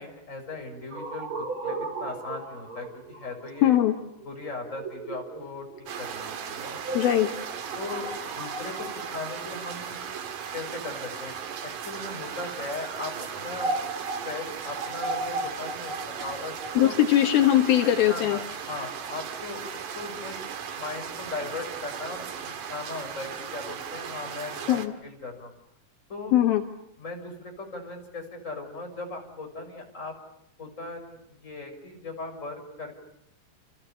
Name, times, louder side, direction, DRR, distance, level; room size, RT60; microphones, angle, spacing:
voice 1, 0.0-3.8 4.2-5.7 6.0-6.8 7.8-8.1 8.4-10.0 10.5-11.3 11.6-13.7 14.2-16.9 17.8-20.4 20.7-25.5 26.1-26.3 27.0-30.1 30.6-33.0, left 3 dB, 20° left, 2 dB, 6.2 m, -38 dB
sound 1, 0.9-10.7 11.5-18.4, right 2 dB, 35° right, 4.1 m, -37 dB
voice 2, 3.6-3.9 6.9-7.3 16.8-18.4 24.7-24.9 26.3-26.6, left 12 dB, 70° left, 4 dB, 3.2 m, -20 dB
sound 2, 5.9-24.9, right 7 dB, 60° right, 3.3 m, -37 dB
29.5 x 28.5 x 7.1 m, 0.77 s
omnidirectional pair, 4.6 m